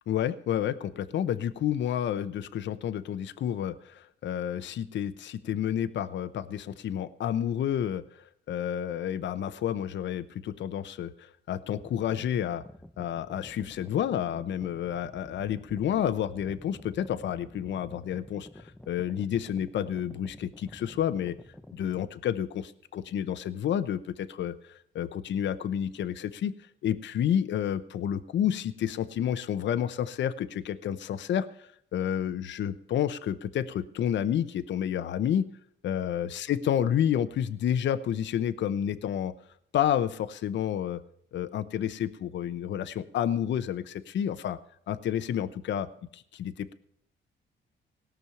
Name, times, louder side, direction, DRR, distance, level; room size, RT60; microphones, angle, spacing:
voice 1, 0.1-12.6 13.0-21.4 21.7-26.5 26.8-35.5 35.8-39.3 39.7-41.0 41.3-44.6 44.9-45.9 46.1-46.7, left 10 dB, 65° left, 13 dB, 0.8 m, -30 dB
sound 1, 11.7-22.1, left 1 dB, 5° left, 0.7 m, -50 dB
18.0 x 6.3 x 7.0 m, 0.70 s
cardioid pair, 90°, 20 cm